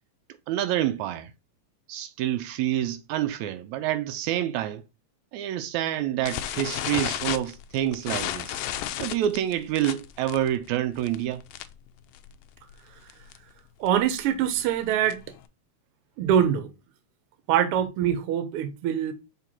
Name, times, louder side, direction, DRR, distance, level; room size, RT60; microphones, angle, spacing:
voice 1, 0.5-1.3 1.9-4.8 5.3-8.6 9.0-11.4, right 12 dB, 85° right, 1.9 m, -27 dB
sound 1, 6.2-11.9 12.1-12.4 12.7-12.8 13.1-13.4 13.9-15.4, left 12 dB, 90° left, 1.3 m, -33 dB
voice 2, 13.8-15.2 16.2-16.7 17.5-19.1, right 9 dB, 65° right, 1.6 m, -24 dB
5.9 x 3.9 x 4.3 m
omnidirectional pair, 3.3 m